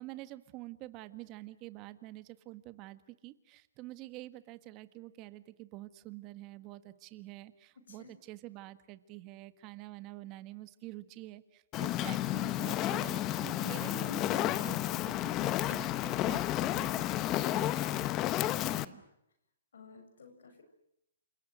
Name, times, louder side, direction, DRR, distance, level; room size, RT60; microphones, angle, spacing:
voice 1, 0.0-18.2 18.7-19.0, right 17 dB, 25° right, 12 dB, 1.6 m, -47 dB
Fire, 11.7-18.8, left 14 dB, 25° left, 0.9 m, -32 dB
voice 2, 18.5-18.9 19.7-20.6, left 5 dB, 85° left, 6 dB, 7.3 m, -55 dB
29.5 x 27.5 x 6.4 m, 0.80 s
hypercardioid pair, 155°, 0 cm